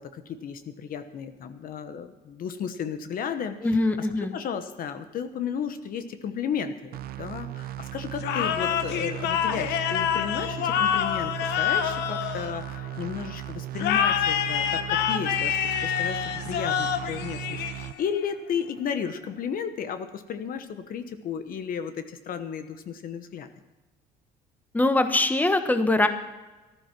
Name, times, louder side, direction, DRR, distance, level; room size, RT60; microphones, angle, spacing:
voice 1, 0.0-4.1 4.3-15.6 15.8-23.5, left 7 dB, 55° left, 10 dB, 1.0 m, -34 dB
voice 2, 3.6-4.3 24.7-26.1, left 2 dB, 10° left, 8 dB, 1.1 m, -22 dB
sound 1, 6.9-17.9, right 14 dB, 60° right, 0.6 m, -37 dB
sound 2, 8.2-13.0 13.8-18.2, left 9 dB, 80° left, 1.0 m, -27 dB
14.0 x 12.5 x 6.0 m, 1.1 s
cardioid pair, 110°, 17 cm